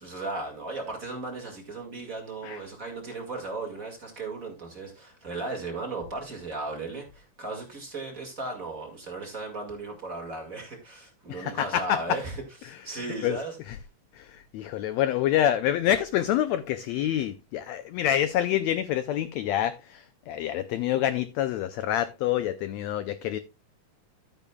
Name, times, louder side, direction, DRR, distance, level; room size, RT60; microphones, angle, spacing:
voice 1, 0.0-13.6, right 3 dB, 30° right, 2.0 m, -36 dB
voice 2, 11.3-12.0 13.2-13.4 13.7-13.8 14.2-23.4, left 11 dB, 80° left, 1.6 m, -27 dB
12.0 x 9.2 x 2.3 m
omnidirectional pair, 3.7 m